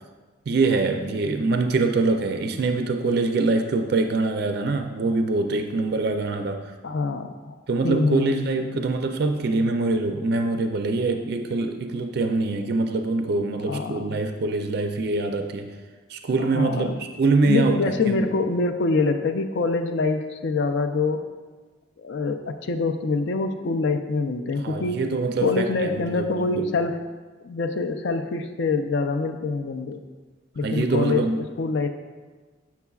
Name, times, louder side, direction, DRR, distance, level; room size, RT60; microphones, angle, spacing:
voice 1, 0.5-6.6 7.7-15.7 16.1-17.8 18.0-18.3 24.6-26.7 30.6-31.4, right 3 dB, 50° right, 6 dB, 0.4 m, -24 dB
voice 2, 6.8-7.6 7.8-8.8 13.2-14.2 16.4-17.0 17.4-21.2 22.0-25.0 25.4-27.0 27.4-30.0 30.6-31.9, left 3 dB, 60° left, 7 dB, 0.4 m, -25 dB
8.2 x 5.8 x 2.3 m, 1.4 s
head